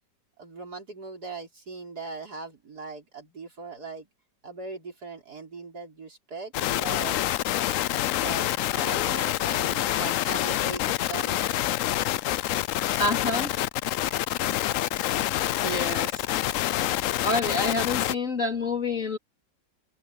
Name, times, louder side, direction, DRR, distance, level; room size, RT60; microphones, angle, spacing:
voice 1, 0.4-4.1 4.4-7.2 8.2-11.4, right 3 dB, 60° right, 5.1 m, -39 dB
sound 1, 6.5-18.1, left 13 dB, 80° left, 0.7 m, -27 dB
voice 2, 13.0-13.5 15.6-16.2 17.2-19.2, left 3 dB, 45° left, 3.8 m, -27 dB
omnidirectional pair, 1.9 m